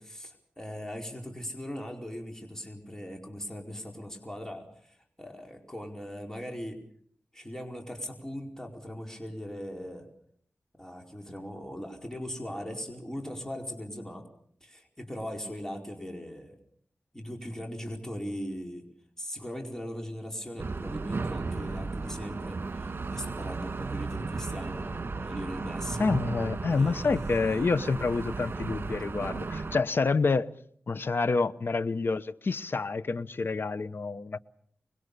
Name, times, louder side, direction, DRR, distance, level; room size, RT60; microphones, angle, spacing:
voice 1, 0.0-6.8 7.3-10.1 10.8-14.2 14.6-16.6 17.1-18.8 19.2-26.1 26.7-27.6, equal, 10° left, 4.7 m, -39 dB
sound 1, 20.6-29.8, right 3 dB, 55° right, 2.1 m, -35 dB
voice 2, 26.0-30.5 30.9-34.4, left 4 dB, 60° left, 1.0 m, -28 dB
25.0 x 21.5 x 6.8 m
cardioid pair, 65°, 4 cm